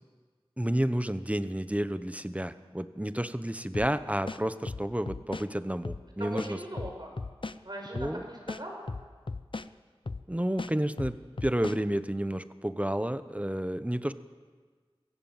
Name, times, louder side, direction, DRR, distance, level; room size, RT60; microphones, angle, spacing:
voice 1, 0.6-6.6 7.9-8.2 10.3-11.2 11.4-14.1, right 1 dB, 15° right, 12 dB, 1.0 m, -30 dB
sound 1, 3.7-3.9 4.3-5.5 5.8-6.0 6.4-7.6 8.0-8.1 8.5-9.7 10.1-10.2 10.6-11.8, left 3 dB, 60° left, 0.7 m, -37 dB
voice 2, 6.2-7.1 7.6-8.8, right 1 dB, 50° right, 1 dB, 6.1 m, -40 dB
23.5 x 16.5 x 7.4 m, 1.5 s
wide cardioid pair, 50°, 10 cm